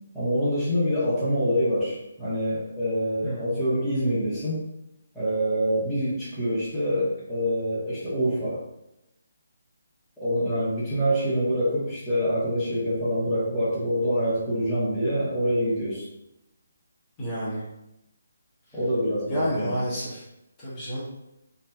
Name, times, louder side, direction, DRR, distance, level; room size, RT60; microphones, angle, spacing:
voice 1, 0.1-4.6 5.1-8.6 10.2-16.0 18.7-19.8, equal, ahead, -14 dB, 1.2 m, -26 dB
voice 2, 3.2-3.5 17.2-17.6 19.3-20.2 20.6-21.0, equal, 20° left, -10 dB, 1.1 m, -30 dB
3.1 x 2.6 x 2.3 m, 0.88 s
figure-of-eight pair, 150°, 0 cm